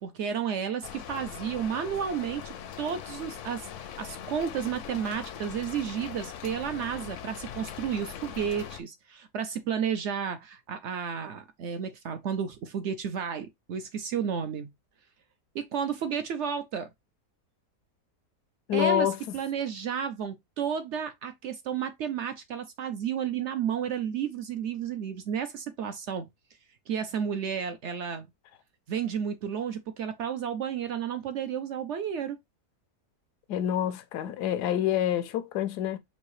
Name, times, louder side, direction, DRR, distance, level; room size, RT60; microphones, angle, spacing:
voice 1, 0.0-14.7 15.5-16.9 18.7-26.3 26.9-28.3 28.9-32.4, right 8 dB, 75° right, 0.6 m, -32 dB
Rain, 0.8-8.8, left 9 dB, 65° left, 0.8 m, -41 dB
voice 2, 18.7-19.2 33.5-36.0, left 11 dB, 85° left, 1.2 m, -27 dB
5.5 x 2.7 x 3.1 m
omnidirectional pair, 1.7 m